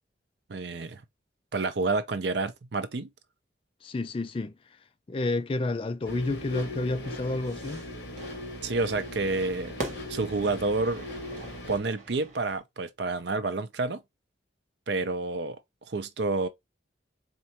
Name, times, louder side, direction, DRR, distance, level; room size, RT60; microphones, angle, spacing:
voice 1, 0.5-1.0 1.5-3.1 8.6-9.7 10.1-11.0 11.7-14.0 14.9-15.6 15.9-16.5, right 3 dB, 65° right, 0.6 m, -29 dB
voice 2, 3.8-4.5 5.1-7.8, left 2 dB, 30° left, 0.3 m, -30 dB
sound 1, 6.0-11.8, left 1 dB, 60° left, 1.4 m, -39 dB
Fire / Fireworks, 7.0-12.6, right 2 dB, 40° right, 1.1 m, -43 dB
4.4 x 2.5 x 2.8 m
head